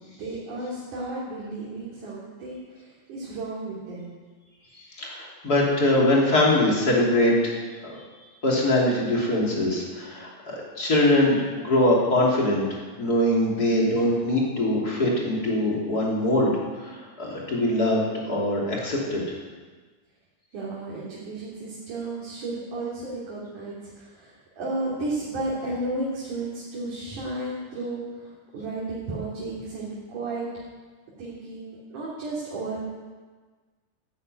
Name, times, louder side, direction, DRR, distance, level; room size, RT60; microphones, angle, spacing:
voice 1, 0.0-4.1 20.5-30.5 31.2-32.8, right 2 dB, 55° right, -7 dB, 4.1 m, -33 dB
voice 2, 5.0-7.5 7.8-8.0 8.4-12.7 13.0-16.5 16.8-19.2, left 1 dB, 25° left, -3 dB, 3.1 m, -22 dB
12.5 x 9.6 x 9.3 m, 1.4 s
omnidirectional pair, 4.5 m